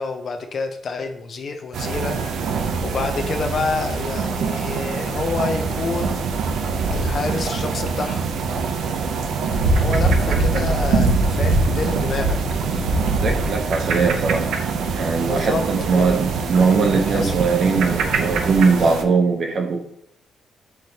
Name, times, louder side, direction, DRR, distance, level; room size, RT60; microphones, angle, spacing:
voice 1, 0.0-6.3 6.9-8.3 9.1-9.2 9.6-12.4 15.2-16.2 16.5-16.6 17.1-17.3 18.8-18.9, left 4 dB, 45° left, 6 dB, 0.5 m, -28 dB
sound 1, 1.7-19.0, right 4 dB, 80° right, 0.5 m, -23 dB
voice 2, 13.2-14.5 14.9-19.8, right 4 dB, 50° right, 3 dB, 0.7 m, -20 dB
5.8 x 3.2 x 2.7 m, 0.68 s
cardioid pair, 160°, 0 cm